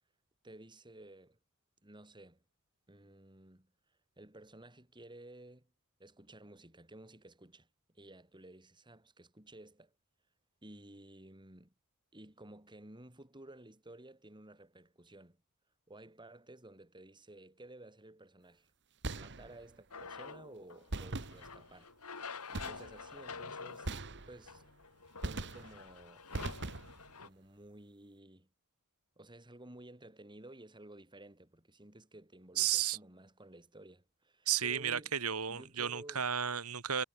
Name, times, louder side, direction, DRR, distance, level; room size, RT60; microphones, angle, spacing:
voice 1, 0.4-1.4 1.8-2.4 2.9-3.7 4.2-5.7 6.0-9.9 10.6-11.7 12.1-15.4 15.9-18.7 19.1-21.9 22.2-23.9 24.3-24.6 25.2-26.3 27.2-28.5 29.2-35.1 35.5-36.3, right 1 dB, 20° right, 4.0 m, -54 dB
sound 1, 19.0-19.8 20.9-21.8 22.5-23.1 23.8-24.7 25.2-25.9 26.3-27.1, right 2 dB, 55° right, 1.8 m, -41 dB
sound 2, 19.9-27.3, left 5 dB, 80° left, 3.1 m, -48 dB
voice 2, 32.6-33.0 34.5-37.0, right 9 dB, 70° right, 2.5 m, -33 dB
head